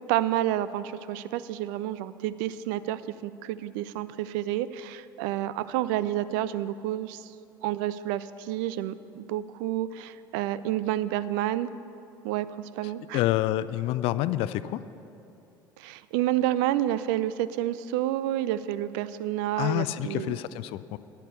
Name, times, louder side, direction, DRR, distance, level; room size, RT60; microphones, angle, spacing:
voice 1, 0.1-7.3 7.6-11.7 12.2-13.2 15.8-20.4, right 13 dB, 65° right, 15 dB, 0.4 m, -29 dB
voice 2, 13.1-14.8 19.6-21.0, left 14 dB, 55° left, 15 dB, 0.4 m, -27 dB
10.5 x 9.1 x 6.8 m, 2.7 s
figure-of-eight pair, 65°, 12 cm